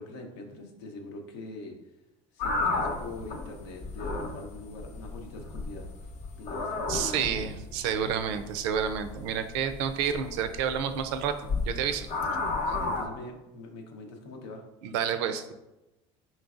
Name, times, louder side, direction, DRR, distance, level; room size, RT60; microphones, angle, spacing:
voice 1, 0.0-1.7 2.3-6.1 6.4-7.5 12.2-14.6, left 2 dB, 85° left, 3 dB, 0.8 m, -43 dB
sound 1, 2.4-13.0, left 3 dB, 55° left, 0.8 m, -33 dB
voice 2, 6.9-11.4 11.6-12.1 14.8-15.5, right 8 dB, 90° right, 10 dB, 0.4 m, -29 dB
4.4 x 3.9 x 2.4 m, 0.99 s
supercardioid pair, 120°, 14 cm